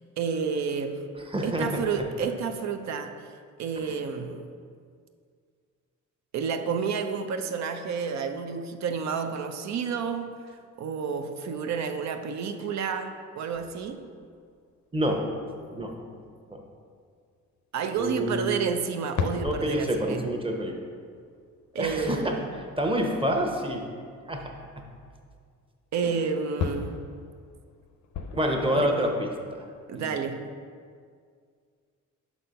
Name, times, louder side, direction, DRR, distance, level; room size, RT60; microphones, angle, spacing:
voice 1, 0.0-1.1 1.4-3.2 3.6-4.5 6.3-10.3 10.8-14.1 17.7-20.2 21.7-22.5 25.9-27.0 28.7-28.9 29.9-30.4, right 6 dB, 65° right, 7 dB, 0.6 m, -30 dB
voice 2, 1.2-2.0 3.8-4.0 14.9-15.3 15.7-16.0 16.5-16.6 18.0-18.6 19.4-20.7 21.7-23.9 24.3-24.4 26.0-26.1 28.3-29.3 29.6-29.7 29.9-30.0, equal, 15° right, 2 dB, 0.9 m, -28 dB
sound 1, 13.5-14.8 15.5-15.6 16.5-16.6 16.9-17.0 18.8-23.0 24.7-24.8 25.2-25.3 26.6-29.8, left 6 dB, 70° left, 0.6 m, -37 dB
5.8 x 4.2 x 5.2 m, 2.1 s
cardioid pair, 90°, 30 cm